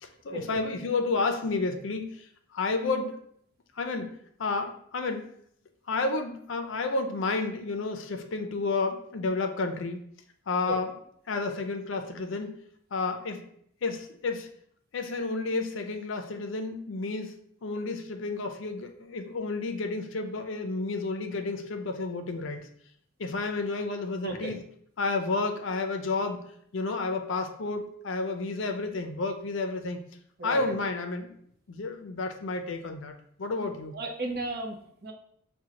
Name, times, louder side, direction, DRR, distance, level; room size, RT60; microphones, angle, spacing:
voice 1, 0.0-3.1 3.8-4.1 4.4-5.3 5.9-10.1 10.5-10.9 11.3-12.5 12.9-13.5 13.8-14.5 14.9-17.3 17.6-22.7 23.2-24.6 25.0-30.1 30.4-31.3 31.7-33.1 33.4-34.0, left 3 dB, 70° left, 6 dB, 0.5 m, -31 dB
voice 2, 24.2-24.5 30.4-30.7 33.9-35.1, right 2 dB, 50° right, 3 dB, 0.6 m, -35 dB
6.1 x 2.2 x 2.8 m, 0.67 s
head